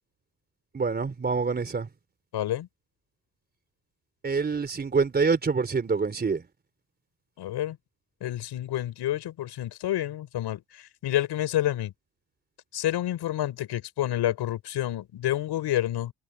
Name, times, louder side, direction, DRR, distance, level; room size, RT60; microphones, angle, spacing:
voice 1, 0.7-1.9 4.2-6.4, right 4 dB, 25° right, 4.1 m, -26 dB
voice 2, 2.3-2.7 7.4-7.8 8.2-11.9 12.7-16.1, left 13 dB, 90° left, 6.0 m, -29 dB
cardioid pair, 175°, 39 cm